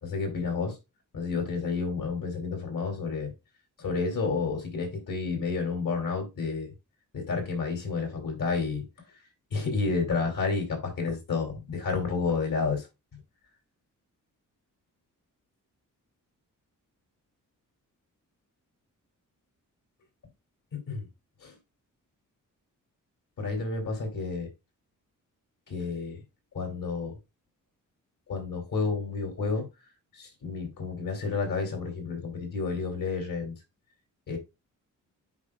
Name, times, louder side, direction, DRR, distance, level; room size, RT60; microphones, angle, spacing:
voice 1, 0.0-0.8 1.1-3.3 3.8-6.7 7.1-8.8 9.5-12.9 20.7-21.1 21.4-21.6 23.4-24.5 25.7-26.2 26.5-27.1 28.3-29.7 30.1-33.5 34.3-34.4, left 4 dB, 75° left, 3.0 m, -30 dB
9.6 x 4.8 x 2.3 m
wide cardioid pair, 125°, 33 cm